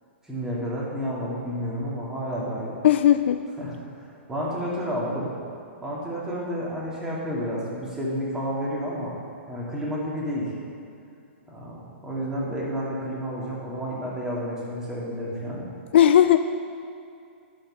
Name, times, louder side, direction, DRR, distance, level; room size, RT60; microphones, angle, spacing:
voice 1, 0.2-2.8 3.6-5.3 5.8-9.1 9.5-10.5 11.5-15.7, equal, 10° right, -6 dB, 2.7 m, -30 dB
voice 2, 2.8-3.4 15.9-16.4, left 11 dB, 65° left, 10 dB, 0.4 m, -16 dB
12.0 x 5.2 x 6.6 m, 2.4 s
hypercardioid pair, 130°, 7 cm